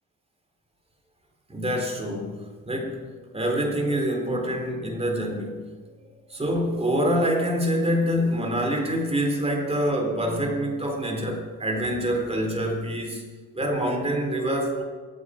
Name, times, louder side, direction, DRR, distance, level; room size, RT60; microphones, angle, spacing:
voice 1, 1.5-5.8 6.3-13.2 13.5-14.8, equal, 15° right, 1 dB, 3.7 m, -26 dB
24.5 x 8.7 x 5.0 m, 1.4 s
cardioid pair, 105°, 34 cm